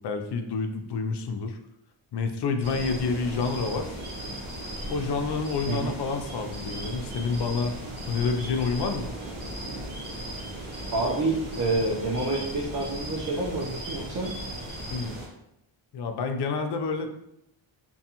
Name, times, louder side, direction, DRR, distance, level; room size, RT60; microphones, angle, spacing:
voice 1, 0.0-1.6 2.1-4.0 4.9-7.8 8.1-9.1 14.9-15.2 15.9-17.1, left 4 dB, 55° left, 6 dB, 0.5 m, -28 dB
sound 1, 2.6-15.3, right 1 dB, 80° right, 1.1 m, -37 dB
voice 2, 10.9-14.3, right 2 dB, 40° right, -3 dB, 0.6 m, -28 dB
2.6 x 2.3 x 2.8 m, 0.79 s
cardioid pair, 70°, 49 cm